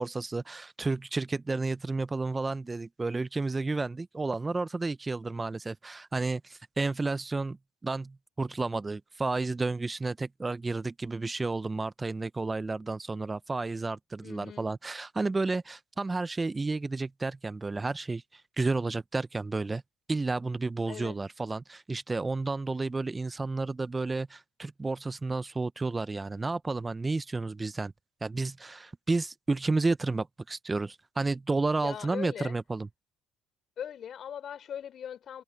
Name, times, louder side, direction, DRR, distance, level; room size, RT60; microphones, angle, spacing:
voice 1, 0.0-7.6 7.8-19.8 20.1-27.9 28.2-32.9, right 3 dB, 20° right, 0.7 m, -31 dB
voice 2, 14.2-14.7 20.9-21.2 31.8-32.6 33.8-35.4, left 9 dB, 50° left, 3.8 m, -40 dB
supercardioid pair, 75°, 0 cm